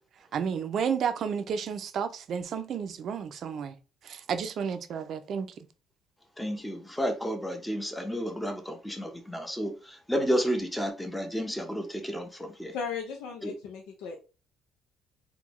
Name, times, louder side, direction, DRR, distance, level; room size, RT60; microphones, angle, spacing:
voice 1, 0.3-3.8 4.0-5.5, right 7 dB, 60° right, 0.5 m, -31 dB
voice 2, 6.4-12.7 13.4-13.6, equal, 5° left, 0.7 m, -31 dB
voice 3, 12.7-14.2, left 6 dB, 85° left, 0.5 m, -36 dB
3.6 x 2.2 x 3.0 m
cardioid pair, 90°, 0 cm